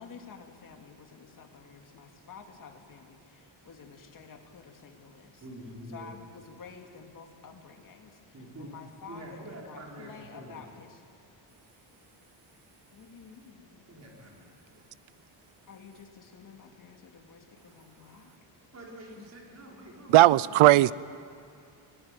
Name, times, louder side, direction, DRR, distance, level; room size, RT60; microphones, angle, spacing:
voice 1, 0.0-5.4 5.9-11.0 12.9-13.8 15.7-18.3, left 5 dB, 40° left, 3 dB, 2.4 m, -50 dB
voice 2, 5.4-6.1 8.3-8.7 9.1-10.9 13.9-14.9 18.7-20.7, equal, 30° right, -2 dB, 4.8 m, -46 dB
voice 3, 20.1-20.9, right 16 dB, 80° right, 20 dB, 0.7 m, -17 dB
23.0 x 18.5 x 9.2 m, 2.4 s
cardioid pair, 170°, 48 cm